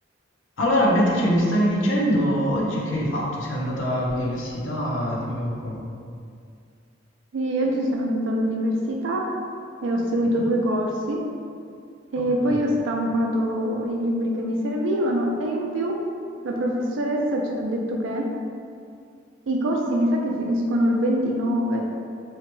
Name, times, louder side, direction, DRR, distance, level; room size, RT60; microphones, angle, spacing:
voice 1, 0.6-5.8 10.2-10.5 12.2-12.6, equal, 85° left, -4 dB, 0.6 m, -24 dB
voice 2, 7.3-9.2 9.8-11.2 12.1-15.9 16.4-18.2 19.5-21.8, equal, 75° right, 0 dB, 0.4 m, -24 dB
2.8 x 2.2 x 3.0 m, 2.3 s
head